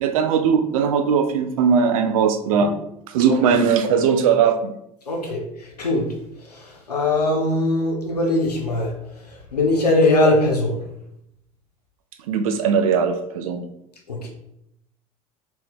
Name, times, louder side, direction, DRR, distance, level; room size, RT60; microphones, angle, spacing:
voice 1, 0.0-2.7 3.1-4.7 12.3-13.6, right 6 dB, 60° right, 8 dB, 0.5 m, -19 dB
voice 2, 5.1-6.1 6.4-8.9 9.2-10.9 14.1-14.3, left 2 dB, 80° left, 0 dB, 0.6 m, -21 dB
4.4 x 2.7 x 3.5 m, 0.79 s
figure-of-eight pair, 70°, 20 cm